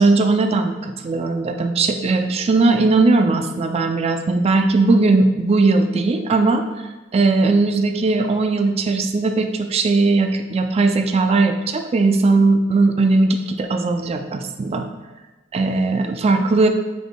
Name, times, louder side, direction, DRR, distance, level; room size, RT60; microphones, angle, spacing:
voice 1, 0.0-6.6 7.1-14.9 15.5-16.7, right 3 dB, 30° right, 6 dB, 0.3 m, -18 dB
6.1 x 3.5 x 2.2 m, 1.2 s
head